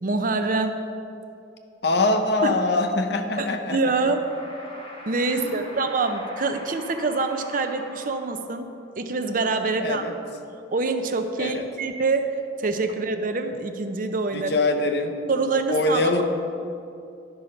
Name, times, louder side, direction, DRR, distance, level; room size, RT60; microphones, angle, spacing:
voice 1, 0.0-0.8 2.4-2.5 3.4-4.2 5.1-10.0 10.7-14.5 15.3-16.2, right 3 dB, 45° right, 7 dB, 0.6 m, -25 dB
voice 2, 1.8-4.0 5.3-5.7 9.8-10.1 11.4-11.7 14.3-15.2 15.7-16.2, left 2 dB, 60° left, 5 dB, 0.7 m, -24 dB
sound 1, 3.7-8.7, left 1 dB, 25° left, 1.3 m, -43 dB
11.0 x 5.5 x 5.1 m, 2.6 s
head